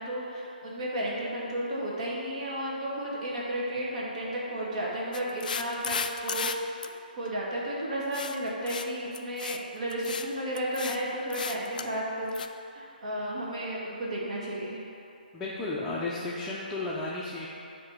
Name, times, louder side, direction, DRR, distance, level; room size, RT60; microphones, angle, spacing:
voice 1, 0.0-6.5 7.2-12.4 12.7-14.8, right 1 dB, 50° right, -4 dB, 1.4 m, -33 dB
sound 1, 5.1-6.5 6.8-6.9 8.1-8.4 8.7-8.9 9.1-9.6 9.9-10.3 10.5-11.0 11.3-11.9 12.3-12.5, left 6 dB, 60° left, 0.3 m, -34 dB
voice 2, 15.3-17.5, left 2 dB, 10° left, -8 dB, 0.6 m, -33 dB
8.5 x 2.9 x 5.1 m, 2.7 s
figure-of-eight pair, 145°, 5 cm